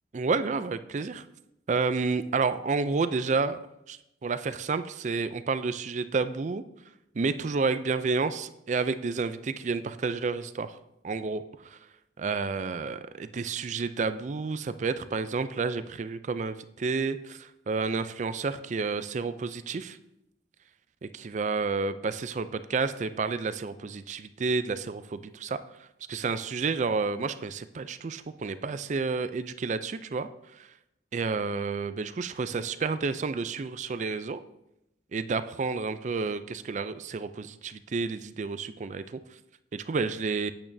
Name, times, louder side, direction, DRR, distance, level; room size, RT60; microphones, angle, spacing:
voice 1, 0.1-1.3 1.7-3.6 3.9-6.6 7.1-10.8 11.0-11.8 12.2-20.0 21.0-30.7 31.1-34.4 35.1-39.2 39.7-40.5, right 4 dB, 40° right, 12 dB, 0.4 m, -30 dB
8.8 x 8.6 x 2.7 m, 0.85 s
head